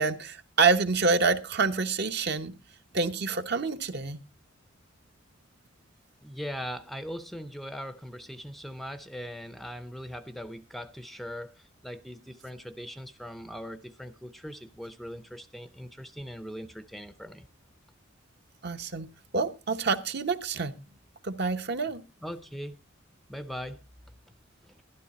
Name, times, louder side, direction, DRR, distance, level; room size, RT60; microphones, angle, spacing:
voice 1, 0.0-2.5 2.9-4.2 18.6-19.1 19.3-20.7 21.2-22.0, right 4 dB, 55° right, 0.9 m, -27 dB
voice 2, 6.2-17.5 22.2-22.8 23.3-23.8, equal, ahead, 0.5 m, -40 dB
13.0 x 11.5 x 4.1 m
head